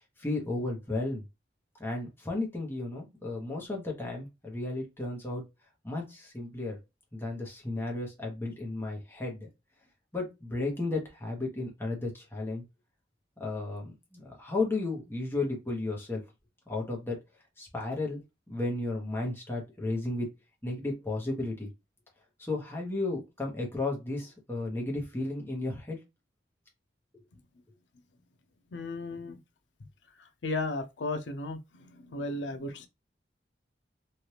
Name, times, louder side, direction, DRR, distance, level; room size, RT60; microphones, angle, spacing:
voice 1, 0.2-1.2 1.8-5.4 5.8-6.8 7.1-9.5 10.1-12.6 13.4-16.2 16.7-17.2 17.6-18.2 18.5-20.3 20.6-21.7 22.4-26.0 27.1-27.2, left 2 dB, 15° left, 0.9 m, -33 dB
voice 2, 28.7-29.4 30.4-31.6 31.9-32.9, left 2 dB, 85° left, 0.6 m, -34 dB
3.2 x 2.4 x 2.8 m
head